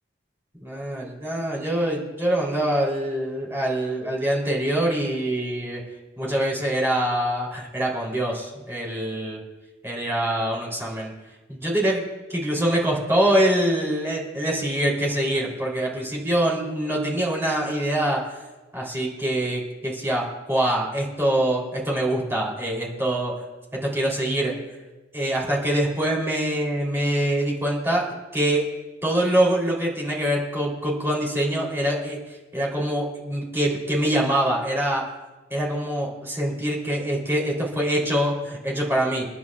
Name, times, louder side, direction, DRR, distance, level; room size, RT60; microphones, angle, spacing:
voice 1, 0.6-5.8 6.2-9.4 9.8-11.1 11.5-12.0 12.3-18.4 18.7-23.3 23.7-24.6 25.1-28.6 29.0-32.2 32.5-35.1 35.5-39.3, right 1 dB, 15° right, -4 dB, 3.3 m, -24 dB
29.5 x 10.5 x 2.4 m, 1.2 s
head